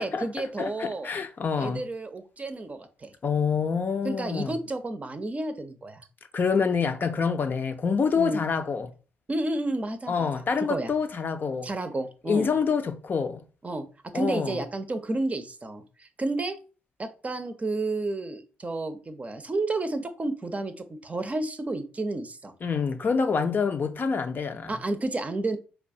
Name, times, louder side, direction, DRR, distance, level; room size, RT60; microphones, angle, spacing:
voice 1, 0.0-1.1 1.6-3.1 4.0-6.0 8.1-8.4 9.3-10.3 10.6-10.9 11.6-12.5 13.6-16.6 17.0-22.5 24.7-25.6, right 2 dB, 30° right, 0.6 m, -31 dB
voice 2, 0.6-1.8 3.2-4.5 6.3-8.9 10.1-11.7 12.3-13.4 14.1-14.6 22.6-24.7, left 5 dB, 40° left, 0.5 m, -26 dB
4.3 x 2.3 x 2.7 m
hypercardioid pair, 45°, 5 cm